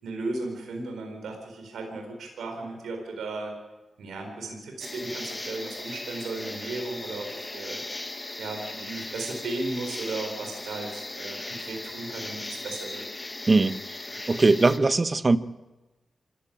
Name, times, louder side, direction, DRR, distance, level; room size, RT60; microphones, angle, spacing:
voice 1, 0.0-3.6 4.0-13.0, right 2 dB, 85° right, 2 dB, 4.4 m, -35 dB
sound 1, 4.8-14.8, left 2 dB, 25° left, 2.1 m, -38 dB
voice 2, 14.3-15.4, right 3 dB, 40° right, 12 dB, 1.2 m, -20 dB
26.0 x 15.0 x 8.7 m, 1.1 s
cardioid pair, 50°, 0 cm